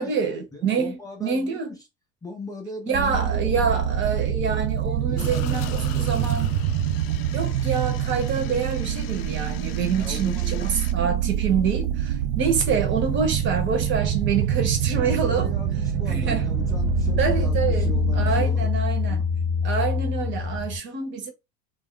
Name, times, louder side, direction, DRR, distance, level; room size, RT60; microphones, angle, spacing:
voice 1, 0.0-1.8 2.9-6.5 7.3-15.5 16.0-16.5 17.2-19.2 19.6-21.3, right 6 dB, 40° right, 0.9 m, -26 dB
voice 2, 0.5-1.8 2.2-3.7 5.1-6.6 10.0-10.7 14.9-18.8 19.1-19.2, left 3 dB, 10° left, 0.5 m, -38 dB
sound 1, 2.9-18.5, right 9 dB, 55° right, 0.4 m, -26 dB
Aquarium aerator y bubbles, 5.2-10.9, left 10 dB, 75° left, 0.5 m, -41 dB
sound 2, 13.0-20.8, left 4 dB, 80° right, 0.8 m, -27 dB
2.4 x 2.1 x 3.6 m
supercardioid pair, 135°, 30 cm